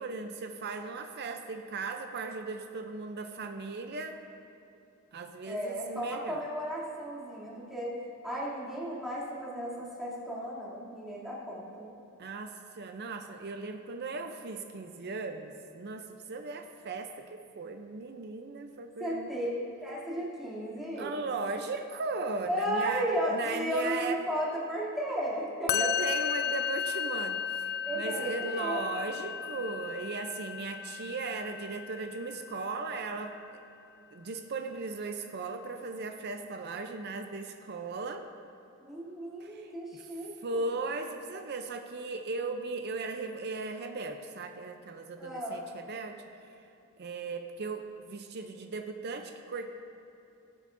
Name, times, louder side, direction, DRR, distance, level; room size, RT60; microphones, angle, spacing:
voice 1, 0.0-4.2 5.1-6.4 12.2-19.3 21.0-24.2 25.7-33.4 34.1-38.3 39.4-40.0 40.4-46.2 47.0-49.7, right 3 dB, 50° right, 6 dB, 0.5 m, -37 dB
voice 2, 5.4-7.9 8.2-11.9 19.0-19.5 19.8-21.3 22.5-25.9 27.8-28.8 38.8-40.8 45.2-45.7, equal, ahead, -9 dB, 2.6 m, -34 dB
Musical instrument, 25.7-33.0, left 8 dB, 45° left, 0.3 m, -34 dB
19.5 x 8.4 x 2.6 m, 2.9 s
head